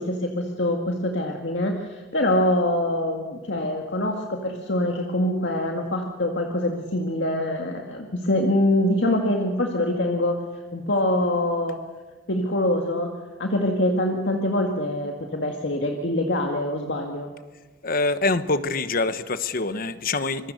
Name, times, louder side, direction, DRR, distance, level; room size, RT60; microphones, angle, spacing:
voice 1, 0.0-10.4 10.7-11.8 12.3-13.1 13.4-17.3, left 1 dB, 75° left, 2 dB, 2.1 m, -24 dB
voice 2, 17.8-20.5, left 3 dB, 55° left, 12 dB, 1.1 m, -25 dB
26.0 x 23.0 x 6.6 m, 1.3 s
head